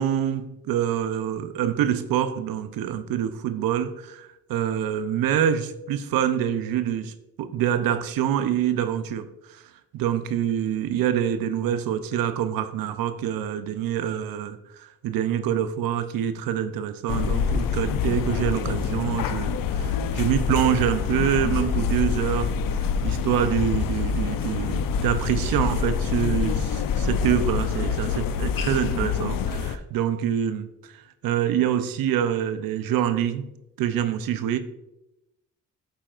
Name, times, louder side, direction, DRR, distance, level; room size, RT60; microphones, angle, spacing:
voice 1, 0.0-9.6 9.9-30.9 31.2-33.5 33.8-34.6, right 10 dB, 85° right, 0.7 m, -26 dB
sound 1, 17.1-29.8, left 6 dB, 75° left, 0.6 m, -26 dB
9.0 x 7.3 x 2.5 m
cardioid pair, 65°, 34 cm